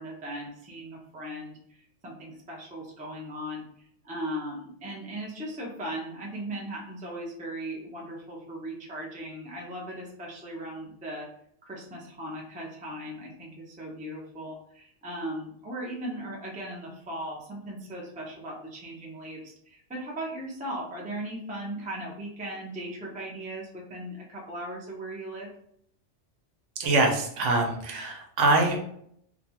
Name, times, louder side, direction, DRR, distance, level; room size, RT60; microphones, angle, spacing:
voice 1, 0.0-3.7 4.0-11.3 11.6-25.5, right 1 dB, 10° right, -2 dB, 0.4 m, -38 dB
voice 2, 26.8-28.8, right 2 dB, 90° right, 2 dB, 1.0 m, -24 dB
2.7 x 2.3 x 2.7 m, 0.68 s
omnidirectional pair, 1.2 m